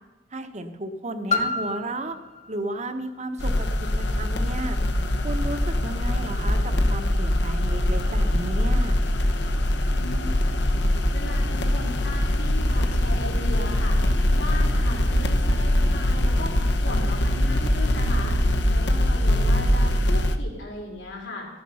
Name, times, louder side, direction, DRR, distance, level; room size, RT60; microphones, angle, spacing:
voice 1, 0.3-2.2 2.5-4.8 5.2-9.0, right 1 dB, 40° right, 8 dB, 1.1 m, -33 dB
Piano, 1.3-6.7 7.5-7.6, left 3 dB, 40° left, 1.6 m, -33 dB
sound 1, 3.4-20.4, left 1 dB, 70° left, 1.1 m, -22 dB
voice 2, 10.0-10.3 11.1-21.5, left 2 dB, 90° left, -1 dB, 4.7 m, -37 dB
15.0 x 11.0 x 5.6 m, 1.1 s
head